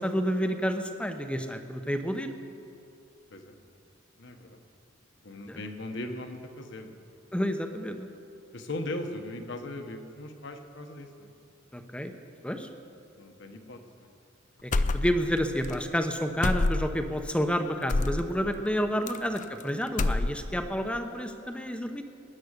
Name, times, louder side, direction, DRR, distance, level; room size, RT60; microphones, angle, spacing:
voice 1, 0.0-2.3 5.5-5.6 7.3-8.1 11.7-12.1 12.4-12.7 14.6-22.1, equal, 5° left, 6 dB, 0.8 m, -30 dB
voice 2, 4.2-4.6 5.2-7.0 8.5-11.3 13.2-14.1 19.0-19.2, left 1 dB, 60° left, 6 dB, 1.3 m, -39 dB
sound 1, 14.7-15.4 15.6-15.8 16.4-17.1 17.9-18.2 19.1-19.6 19.9-20.6, left 2 dB, 40° left, 0.5 m, -27 dB
20.0 x 9.4 x 6.7 m, 2.5 s
head